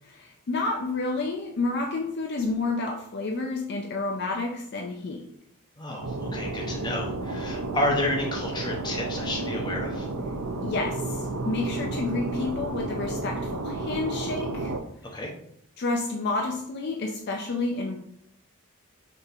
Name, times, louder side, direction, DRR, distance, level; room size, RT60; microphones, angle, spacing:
voice 1, 0.0-5.3 10.6-14.7 15.8-18.0, left 3 dB, 50° left, 1 dB, 0.4 m, -30 dB
voice 2, 5.8-10.1 15.1-15.3, left 1 dB, 20° left, -1 dB, 0.7 m, -30 dB
sound 1, 6.0-14.8, right 2 dB, 80° right, 0.5 m, -32 dB
5.4 x 3.0 x 2.5 m, 0.70 s
head